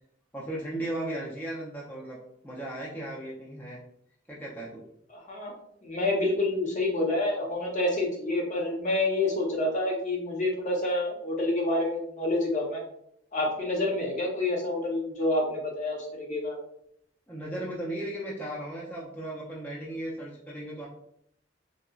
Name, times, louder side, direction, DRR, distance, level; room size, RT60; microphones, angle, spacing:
voice 1, 0.3-2.2 2.4-3.8 4.3-4.8 17.3-20.9, right 1 dB, 10° left, -6 dB, 0.5 m, -36 dB
voice 2, 5.1-5.5 5.8-12.8 13.3-16.6, left 2 dB, 40° left, -1 dB, 0.7 m, -28 dB
3.8 x 2.1 x 2.3 m, 0.72 s
head